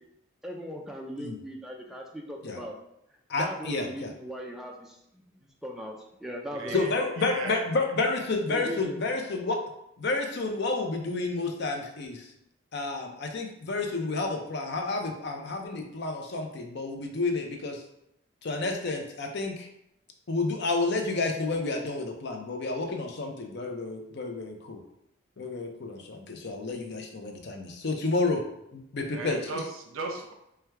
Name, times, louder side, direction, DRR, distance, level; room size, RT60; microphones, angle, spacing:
voice 1, 0.4-2.7 3.4-4.9 5.6-6.8 8.5-9.0, equal, ahead, 0 dB, 0.4 m, -38 dB
voice 2, 3.3-4.1 6.7-9.6 10.0-12.3 12.7-17.8 18.4-19.7 20.3-24.8 25.4-28.4 28.7-29.4, left 3 dB, 55° left, 3 dB, 0.6 m, -30 dB
voice 3, 6.5-6.9 7.2-7.6 29.1-30.3, right 3 dB, 85° right, 3 dB, 0.7 m, -36 dB
4.5 x 2.2 x 3.4 m, 0.81 s
head